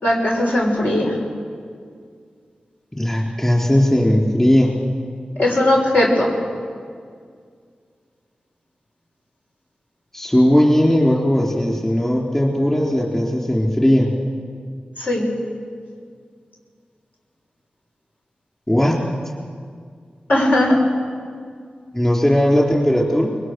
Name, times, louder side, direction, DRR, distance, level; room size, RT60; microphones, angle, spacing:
voice 1, 0.0-1.1 5.4-6.3 15.0-15.3 20.3-20.8, left 1 dB, 65° left, -2 dB, 6.3 m, -18 dB
voice 2, 2.9-4.8 10.1-14.1 18.7-19.0 21.9-23.3, equal, 15° left, -2 dB, 4.5 m, -17 dB
23.5 x 21.5 x 6.6 m, 2.1 s
cardioid pair, 45°, 3 cm